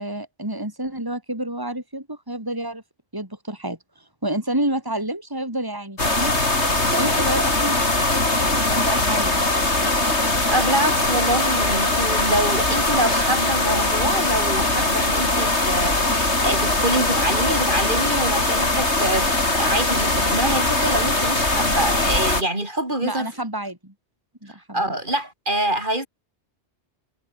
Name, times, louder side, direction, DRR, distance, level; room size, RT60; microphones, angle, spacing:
voice 1, 0.0-2.8 3.1-6.3 6.9-9.4 23.0-23.9 24.4-24.9, right 1 dB, 20° right, 4.7 m, -29 dB
sound 1, 6.0-22.4, left 2 dB, 75° left, 5.3 m, -21 dB
voice 2, 10.5-23.3 24.7-26.1, right 1 dB, 45° right, 5.1 m, -25 dB
omnidirectional pair, 1.2 m